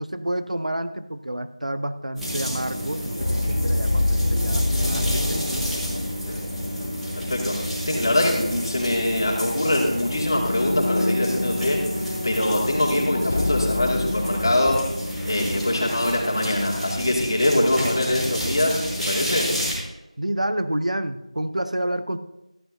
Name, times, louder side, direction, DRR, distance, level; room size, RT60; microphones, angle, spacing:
voice 1, 0.0-5.7 20.2-22.2, right 1 dB, 70° right, 11 dB, 0.8 m, -29 dB
sound 1, 2.1-19.7, equal, ahead, 0.8 m, -30 dB
sound 2, 3.2-8.0 8.3-8.5 10.0-14.6, left 2 dB, 15° left, 0.4 m, -27 dB
voice 2, 7.1-11.9 12.2-14.8 15.2-19.5, left 1 dB, 35° left, -1 dB, 2.3 m, -23 dB
14.5 x 11.0 x 2.8 m, 0.94 s
figure-of-eight pair, 170°, 4 cm